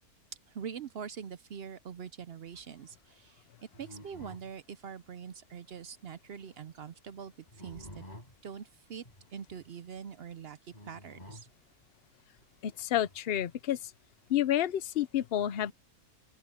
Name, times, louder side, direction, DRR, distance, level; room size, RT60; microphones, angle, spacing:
voice 1, 0.5-3.4 3.8-8.0 8.4-9.0 9.3-10.6 10.8-11.5, right 7 dB, 60° right, 0.6 m, -44 dB
sound 1, 3.7-4.5 6.2-6.5 7.5-8.4 9.0-9.7 10.7-11.5 12.4-13.2, left 1 dB, 25° left, 6.1 m, -50 dB
voice 2, 12.6-13.8 14.3-15.7, left 11 dB, 55° left, 0.7 m, -29 dB
open air
omnidirectional pair, 1.6 m